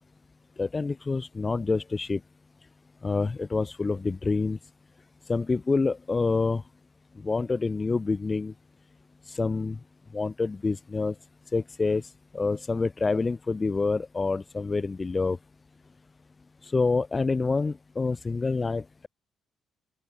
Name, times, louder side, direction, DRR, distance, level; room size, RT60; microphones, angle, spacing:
voice 1, 0.6-2.2 3.0-4.6 5.3-6.6 7.2-8.5 9.3-9.8 10.1-11.1 11.5-12.0 12.3-15.4 16.6-18.8, left 3 dB, 20° left, 0.6 m, -27 dB
open air
cardioid pair, 155°, 0 cm